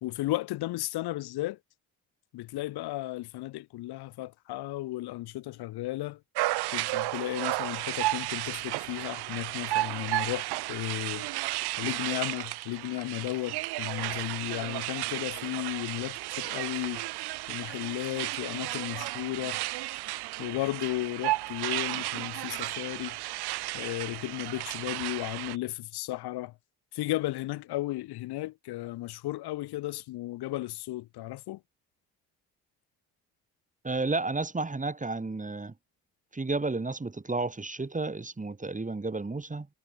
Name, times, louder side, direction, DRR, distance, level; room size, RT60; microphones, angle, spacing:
voice 1, 0.0-1.6 2.3-6.2 6.7-11.3 11.8-17.1 17.5-19.6 20.4-23.2 23.7-26.5 26.9-31.6, left 17 dB, 85° left, 2.4 m, -34 dB
sound 1, 6.4-25.6, right 19 dB, 85° right, 3.8 m, -33 dB
voice 2, 33.8-35.7 36.3-39.7, right 3 dB, 20° right, 2.1 m, -32 dB
supercardioid pair, 60°, 38 cm